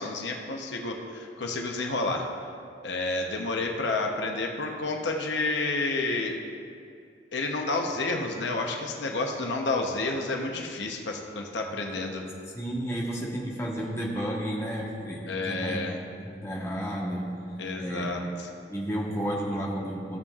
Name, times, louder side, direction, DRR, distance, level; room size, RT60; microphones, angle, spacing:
voice 1, 0.0-2.3 2.8-6.4 7.3-12.3 15.3-16.0 17.6-18.5, left 2 dB, 90° left, 2 dB, 0.8 m, -30 dB
voice 2, 12.5-15.8 16.2-18.2 18.7-20.2, equal, 15° left, -4 dB, 1.2 m, -32 dB
15.5 x 7.1 x 2.4 m, 2.4 s
head